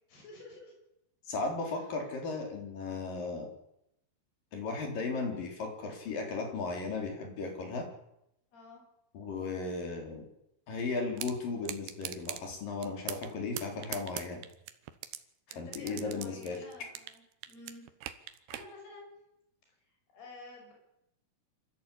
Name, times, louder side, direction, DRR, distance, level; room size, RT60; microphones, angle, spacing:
voice 1, 0.1-0.7 1.6-1.8 8.5-8.8 15.5-17.9 18.1-19.1 20.1-20.7, left 2 dB, 80° left, 1 dB, 7.8 m, -51 dB
voice 2, 1.3-3.5 4.5-7.9 9.1-10.3 10.7-14.4 15.6-16.6, left 3 dB, 60° left, 3 dB, 5.5 m, -36 dB
sound 1, 11.2-11.3 11.7-12.4 12.8-13.3 13.6-15.2 15.5-17.2 17.4-18.7, right 12 dB, 80° right, 3.0 m, -40 dB
25.5 x 15.0 x 8.6 m, 0.83 s
omnidirectional pair, 4.5 m